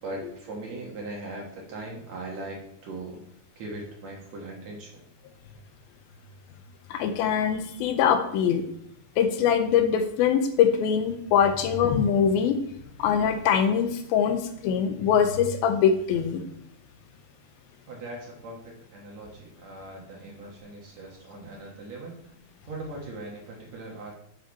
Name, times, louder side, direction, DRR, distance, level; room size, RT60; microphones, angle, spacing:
voice 1, 0.0-3.2 3.6-5.0 17.9-22.2 22.7-24.2, right 2 dB, 60° right, -2 dB, 2.0 m, -39 dB
voice 2, 6.9-8.6 9.2-12.6 13.0-16.4, left 7 dB, 90° left, 7 dB, 2.6 m, -23 dB
8.2 x 4.6 x 4.6 m, 0.71 s
omnidirectional pair, 4.3 m